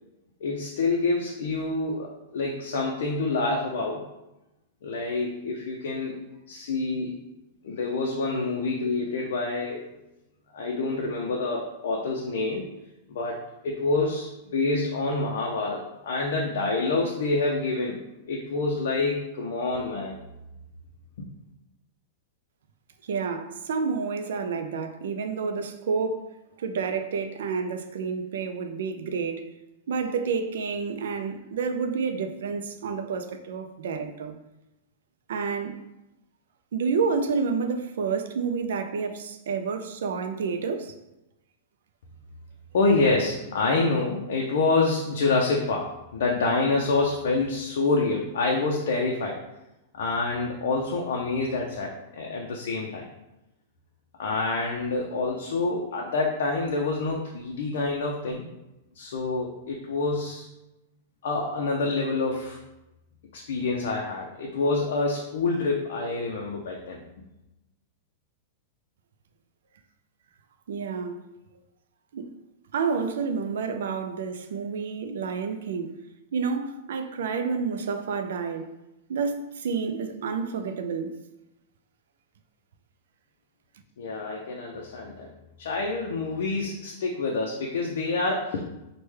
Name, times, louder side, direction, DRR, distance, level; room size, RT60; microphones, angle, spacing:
voice 1, 0.4-4.1 4.8-6.2 6.5-7.2 7.6-9.8 10.5-12.7 13.1-18.0 18.3-20.2 21.2-21.3 42.7-49.4 49.9-53.0 54.2-58.5 59.0-60.5 61.2-62.6 63.3-67.0 84.0-85.3 85.6-88.6, left 3 dB, 70° left, 0.4 m, -27 dB
voice 2, 23.0-29.5 29.9-34.4 35.3-35.8 36.7-40.9 70.7-71.2 72.1-72.3 72.7-75.9 76.3-78.6 79.1-81.1, right 5 dB, 75° right, 0.3 m, -29 dB
3.2 x 2.1 x 3.2 m
supercardioid pair, 175°, 0 cm